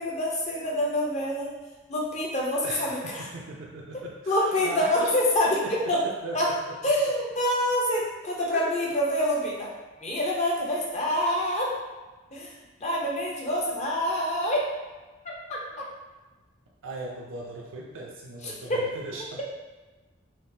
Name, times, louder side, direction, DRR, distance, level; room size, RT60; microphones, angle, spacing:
voice 1, 0.0-1.5 1.9-3.3 3.9-5.6 5.9-6.0 6.3-6.5 6.8-9.7 10.0-11.7 12.3-12.5 12.8-14.7 15.2-15.9 18.4-18.9, left 1 dB, 35° left, -3 dB, 0.7 m, -26 dB
voice 2, 2.6-5.1 5.4-6.7 8.5-8.7 16.8-19.4, right 2 dB, 70° right, -2 dB, 0.5 m, -38 dB
3.5 x 2.4 x 2.6 m, 1.2 s
head